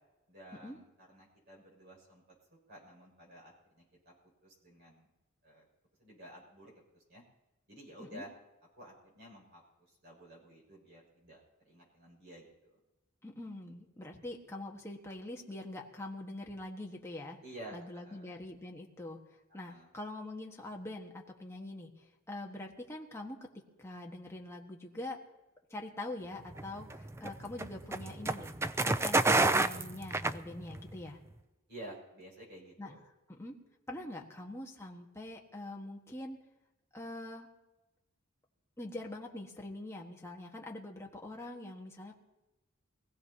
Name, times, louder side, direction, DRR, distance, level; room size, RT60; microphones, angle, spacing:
voice 1, 0.3-2.2 2.7-4.1 4.4-5.1 5.4-5.7 6.0-7.2 7.7-8.3 8.8-12.8 17.4-18.3 19.5-19.9 31.7-33.0, right 1 dB, 55° right, -2 dB, 6.2 m, -52 dB
voice 2, 13.2-17.4 17.7-19.2 19.5-25.2 25.7-28.5 28.8-31.2 32.8-32.9 33.3-33.6 33.9-36.4 36.9-37.5 38.8-42.2, left 1 dB, 15° left, 0 dB, 1.5 m, -44 dB
sound 1, 26.5-31.0, right 2 dB, 10° right, 0.4 m, -29 dB
23.5 x 16.0 x 2.9 m, 1.0 s
head